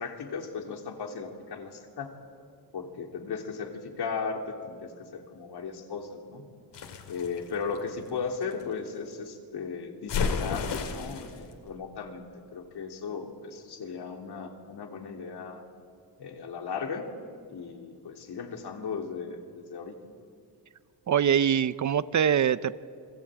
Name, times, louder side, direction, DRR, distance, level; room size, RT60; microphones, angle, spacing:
voice 1, 0.0-2.1 2.7-6.5 7.1-12.3 12.5-15.6 16.2-17.1 17.5-19.9, left 5 dB, 70° left, 4 dB, 3.1 m, -36 dB
sound 1, 6.7-8.6 10.1-11.4, left 5 dB, 85° left, 2.5 m, -32 dB
voice 2, 21.1-22.7, right 8 dB, 45° right, 16 dB, 0.6 m, -23 dB
29.5 x 21.5 x 8.9 m, 2.3 s
wide cardioid pair, 145°, 41 cm